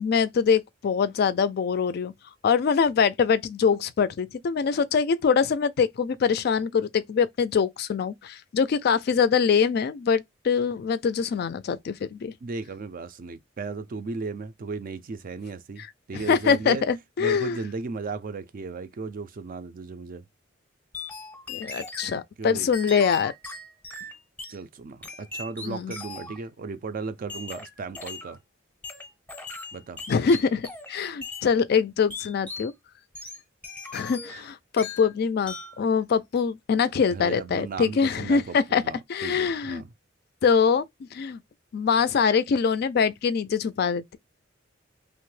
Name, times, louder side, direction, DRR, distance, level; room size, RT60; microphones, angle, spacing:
voice 1, 0.0-2.1 2.4-12.3 16.1-17.6 21.5-23.3 25.6-25.9 30.1-32.7 33.9-38.8 39.1-39.8 40.4-41.4 41.7-44.2, left 6 dB, 55° left, 0.3 m, -24 dB
voice 2, 12.4-16.8 17.2-20.2 22.4-22.7 24.5-28.4 29.7-30.0 37.1-39.9, right 4 dB, 45° right, 0.4 m, -35 dB
sound 1, 20.9-22.2 22.7-24.6 25.0-26.4 27.3-28.4 28.8-30.9 31.2-31.5 32.1-32.7 33.1-34.5 34.8-35.1 35.5-35.8, left 3 dB, 10° left, 0.7 m, -39 dB
3.0 x 2.0 x 3.1 m
head